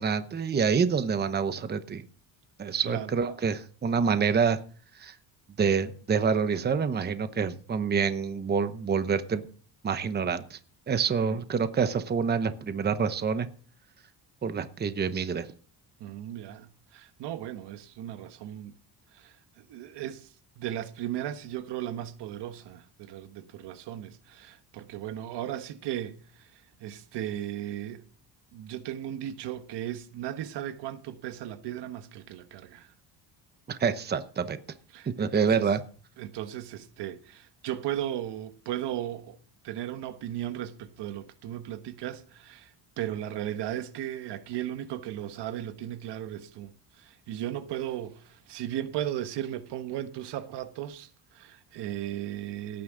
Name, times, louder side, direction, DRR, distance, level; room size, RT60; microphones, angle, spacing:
voice 1, 0.0-2.0 2.6-4.6 5.0-5.1 5.6-9.5 9.8-10.6 10.9-13.5 14.4-15.5 33.7-34.6 35.2-35.8, right 6 dB, 25° right, 0.9 m, -27 dB
voice 2, 16.0-18.7 19.1-28.1 28.5-32.9 34.9-35.7 36.2-39.4 39.6-52.8, right 12 dB, 70° right, 1.3 m, -36 dB
17.5 x 9.6 x 3.9 m
cardioid pair, 135°, 42 cm